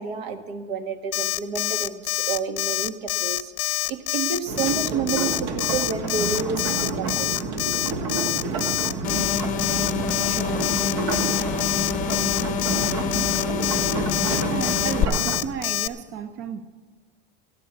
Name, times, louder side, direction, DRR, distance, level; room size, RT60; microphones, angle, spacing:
voice 1, 0.0-7.4, right 6 dB, 80° right, 1.4 m, -30 dB
Alarm, 1.1-15.9, left 19 dB, 65° left, 0.7 m, -26 dB
sound 1, 4.5-15.4, right 4 dB, 55° right, 1.3 m, -29 dB
sound 2, 9.0-15.0, left 7 dB, 25° left, 1.0 m, -28 dB
voice 2, 10.2-10.7 14.4-16.6, right 7 dB, 35° right, 0.6 m, -33 dB
13.5 x 9.0 x 7.8 m
cardioid pair, 165°, 32 cm